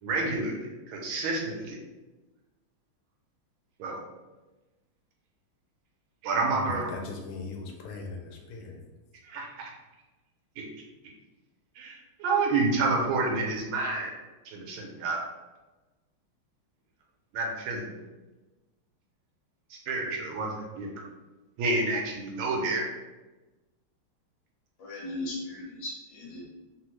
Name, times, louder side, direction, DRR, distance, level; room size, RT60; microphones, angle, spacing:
voice 1, 0.0-1.8 3.8-4.0 6.2-6.9 9.2-9.7 10.6-10.7 11.8-14.2 14.4-15.3 17.3-18.1 19.7-20.9 21.6-22.8, right 3 dB, 80° right, -1 dB, 1.4 m, -29 dB
voice 2, 6.5-8.8, left 4 dB, 90° left, 1 dB, 1.5 m, -39 dB
voice 3, 24.8-26.5, left 2 dB, 70° left, -4 dB, 1.5 m, -37 dB
3.6 x 2.1 x 3.0 m, 1.1 s
omnidirectional pair, 2.3 m